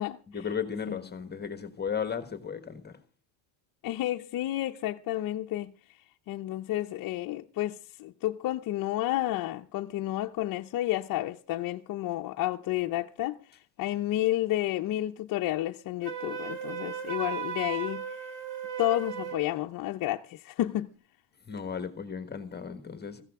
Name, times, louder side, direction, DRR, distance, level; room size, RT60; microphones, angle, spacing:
voice 1, 0.3-3.0 21.5-23.2, left 6 dB, 20° left, 1.4 m, -35 dB
voice 2, 3.8-5.7 6.3-18.2 18.8-20.9, left 15 dB, 45° left, 0.7 m, -31 dB
Wind instrument woodwind instrument, 16.0-19.5, right 8 dB, 65° right, 4.3 m, -36 dB
16.0 x 15.0 x 3.6 m
supercardioid pair, 115°, 46 cm